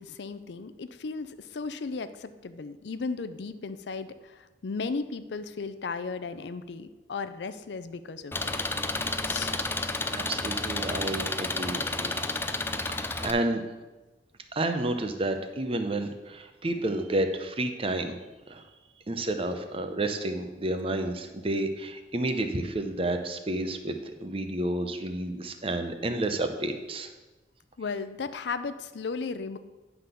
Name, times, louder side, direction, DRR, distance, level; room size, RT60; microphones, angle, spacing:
voice 1, 0.0-8.5 9.3-9.6 27.8-29.6, left 4 dB, 70° left, 12 dB, 0.5 m, -35 dB
Engine, 8.3-13.3, left 2 dB, 15° left, 0.4 m, -31 dB
voice 2, 10.1-12.2 12.9-13.6 14.5-18.1 18.5-18.6 19.1-27.1, right 1 dB, 30° right, 7 dB, 0.7 m, -30 dB
9.5 x 4.0 x 6.8 m, 1.2 s
head